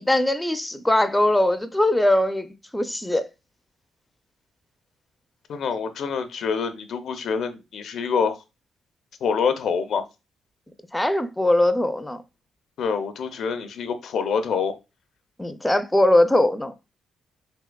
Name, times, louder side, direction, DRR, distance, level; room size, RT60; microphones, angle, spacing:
voice 1, 0.0-2.5 2.7-3.3 10.9-12.2 15.4-16.7, left 1 dB, 10° left, 0.4 m, -21 dB
voice 2, 5.5-8.4 9.2-10.0 12.8-14.7, left 6 dB, 70° left, 0.5 m, -26 dB
3.4 x 2.9 x 2.2 m
supercardioid pair, 65°, 0 cm